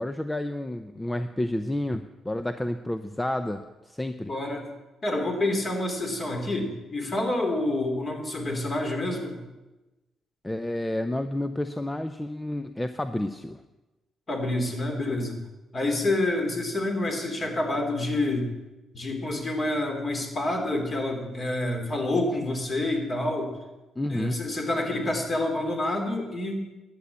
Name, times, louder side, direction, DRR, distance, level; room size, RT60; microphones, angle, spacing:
voice 1, 0.0-4.3 10.4-13.6 24.0-24.4, left 1 dB, 10° left, 9 dB, 0.6 m, -30 dB
voice 2, 4.3-4.7 5.0-9.4 14.3-15.4 15.7-18.5 18.9-23.6 24.1-26.6, left 1 dB, 35° left, 3 dB, 3.2 m, -28 dB
11.5 x 8.4 x 8.2 m, 1.1 s
cardioid pair, 90°, 0 cm